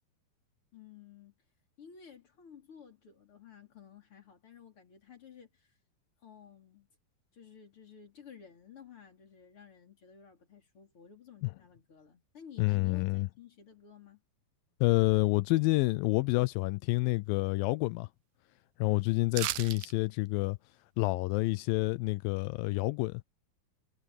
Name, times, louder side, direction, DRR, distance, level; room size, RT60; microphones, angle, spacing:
voice 1, 0.7-1.4 1.8-5.7 6.2-6.9 7.3-14.2, left 7 dB, 35° left, 4.7 m, -54 dB
voice 2, 12.6-13.3 14.8-18.1 18.8-20.6 21.0-23.2, left 22 dB, 80° left, 2.1 m, -28 dB
sound 1, 19.3-19.9 20.3-20.4, right 15 dB, 75° right, 2.3 m, -34 dB
omnidirectional pair, 4.4 m